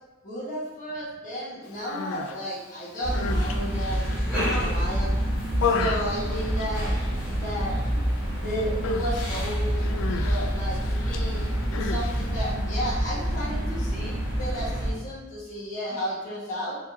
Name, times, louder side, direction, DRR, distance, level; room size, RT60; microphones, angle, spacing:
voice 1, 0.2-5.1 5.6-7.0 7.3-7.8 8.4-16.8, equal, 40° left, -9 dB, 1.1 m, -33 dB
Human voice, 1.7-2.4 2.9-4.7 5.2-7.2 7.4-8.4 8.8-12.5, left 5 dB, 75° left, 0.3 m, -33 dB
sound 1, 3.0-14.9, equal, 10° right, 1.4 m, -27 dB
4.3 x 3.5 x 2.4 m, 1.2 s
head